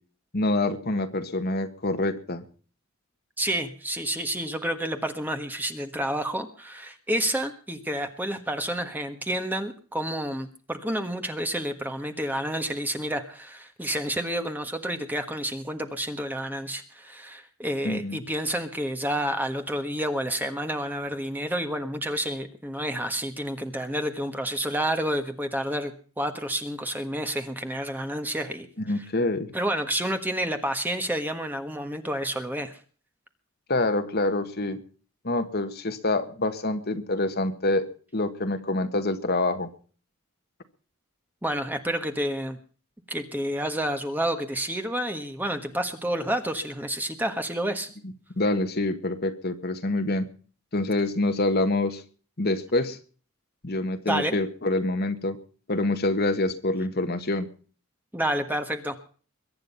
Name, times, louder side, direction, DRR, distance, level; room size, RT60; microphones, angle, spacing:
voice 1, 0.3-2.4 17.8-18.2 28.9-29.5 33.7-34.8 35.2-37.9 38.1-39.7 48.4-50.3 50.7-52.0 52.4-53.0 53.6-55.4 55.7-57.5, left 2 dB, 45° left, 8 dB, 1.5 m, -26 dB
voice 2, 3.4-28.7 28.9-29.1 29.5-32.8 41.4-42.6 43.1-47.9 54.1-54.4 58.1-59.0, right 1 dB, 10° right, 7 dB, 1.4 m, -29 dB
22.5 x 9.1 x 5.6 m, 0.41 s
head